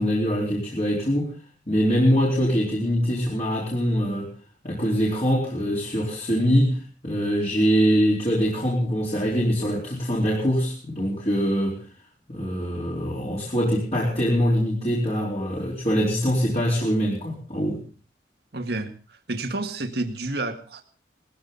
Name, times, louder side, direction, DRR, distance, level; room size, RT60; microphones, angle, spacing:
voice 1, 0.0-1.3 1.7-4.3 4.6-11.8 12.3-17.8, equal, 35° left, -3 dB, 4.4 m, -23 dB
voice 2, 18.5-20.8, right 2 dB, 60° right, 5 dB, 1.9 m, -30 dB
20.0 x 15.5 x 4.0 m, 0.36 s
head